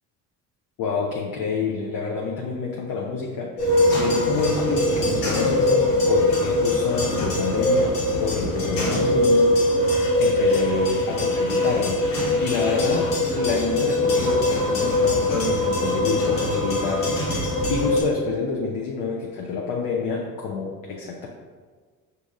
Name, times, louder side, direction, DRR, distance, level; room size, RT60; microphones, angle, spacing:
voice 1, 0.8-9.7 10.2-12.0 12.4-21.3, left 5 dB, 50° left, -1 dB, 0.7 m, -28 dB
sound 1, 3.6-18.0, left 1 dB, 75° left, 1.5 m, -22 dB
5.1 x 2.8 x 3.7 m, 1.5 s
hypercardioid pair, 65°, 43 cm